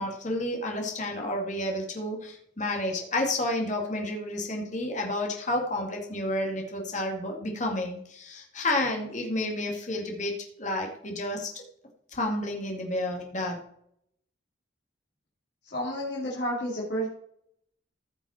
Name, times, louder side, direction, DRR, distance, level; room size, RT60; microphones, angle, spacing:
voice 1, 0.0-10.3 10.6-11.6 12.1-13.6, left 1 dB, 40° left, 1 dB, 2.3 m, -30 dB
voice 2, 15.7-17.1, equal, 60° left, -5 dB, 2.8 m, -30 dB
15.5 x 5.9 x 4.4 m, 0.69 s
head